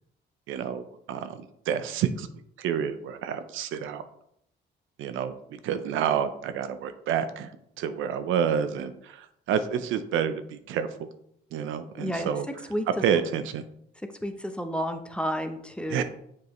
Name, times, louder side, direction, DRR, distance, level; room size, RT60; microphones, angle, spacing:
voice 1, 0.5-2.3 2.6-4.0 5.0-7.5 7.8-11.1 11.5-12.5 13.0-13.6 15.9-16.0, right 8 dB, 85° right, 11 dB, 0.6 m, -29 dB
voice 2, 12.0-12.3 12.7-12.9 14.2-16.0, equal, 5° left, 6 dB, 0.7 m, -31 dB
7.1 x 4.7 x 3.1 m, 0.73 s
cardioid pair, 90°, 20 cm